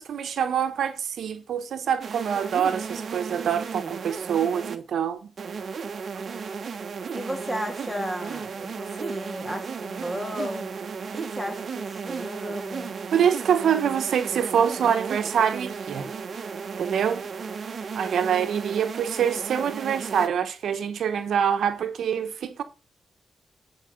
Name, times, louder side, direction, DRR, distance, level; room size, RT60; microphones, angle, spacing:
voice 1, 0.0-5.3 13.1-16.1 16.8-17.3 17.9-22.6, right 8 dB, 80° right, 1.0 m, -25 dB
sound 1, 2.0-4.8 5.4-20.3, right 5 dB, 60° right, 1.0 m, -35 dB
voice 2, 7.1-10.7 11.1-12.9, equal, 5° left, 2.7 m, -34 dB
11.0 x 4.8 x 5.1 m
cardioid pair, 85°, 0 cm